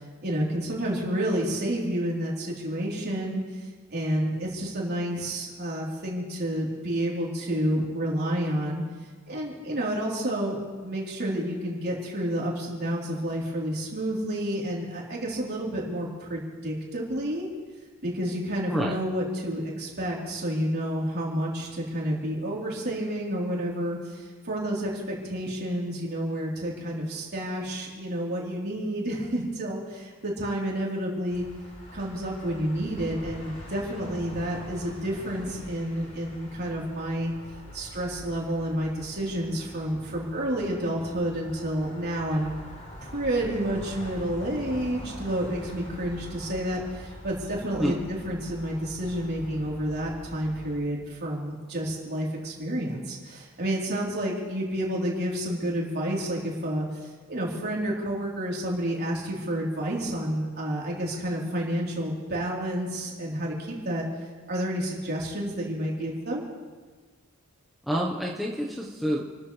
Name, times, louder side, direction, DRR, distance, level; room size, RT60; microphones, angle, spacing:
voice 1, 0.2-3.4 3.9-8.8 9.3-10.6 10.8-17.5 18.0-31.5 31.9-37.3 37.7-42.5 43.0-64.0 64.5-66.5, equal, 50° right, -3 dB, 4.1 m, -30 dB
sound 1, 31.3-50.8, equal, 55° left, 4.6 m, -43 dB
voice 2, 67.9-69.2, equal, ahead, -4 dB, 1.2 m, -27 dB
29.0 x 13.5 x 3.4 m, 1.4 s
head